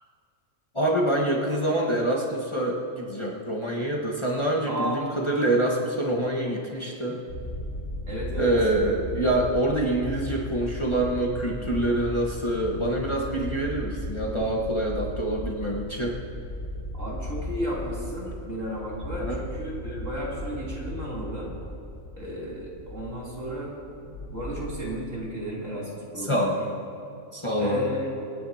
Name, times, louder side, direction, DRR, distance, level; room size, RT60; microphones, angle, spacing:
voice 1, 0.7-7.2 8.4-16.2 19.2-19.4 26.2-26.6 27.3-27.9, right 1 dB, 20° left, -3 dB, 1.5 m, -26 dB
voice 2, 4.7-5.1 8.1-8.6 16.9-21.5 22.2-23.7 24.3-26.7 27.6-28.1, equal, 65° right, -6 dB, 3.9 m, -33 dB
sound 1, 7.3-24.8, equal, 70° left, 1.7 m, -36 dB
26.0 x 10.5 x 2.9 m, 2.7 s
omnidirectional pair, 1.4 m